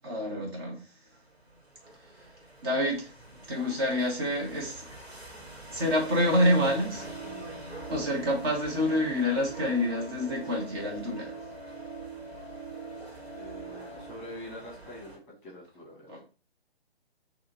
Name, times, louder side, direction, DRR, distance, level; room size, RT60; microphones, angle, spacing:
voice 1, 0.0-0.8 2.6-3.1 3.5-4.8 5.7-7.1 7.9-11.3 16.1-16.2, left 1 dB, 25° right, 1.3 m, -27 dB
sound 1, 1.1-15.2, right 1 dB, 75° right, 1.8 m, -47 dB
sound 2, 6.0-14.1, right 4 dB, 40° right, 2.0 m, -43 dB
voice 2, 13.3-16.2, equal, 20° left, 1.7 m, -45 dB
4.8 x 2.9 x 2.9 m
figure-of-eight pair, 140°, 32 cm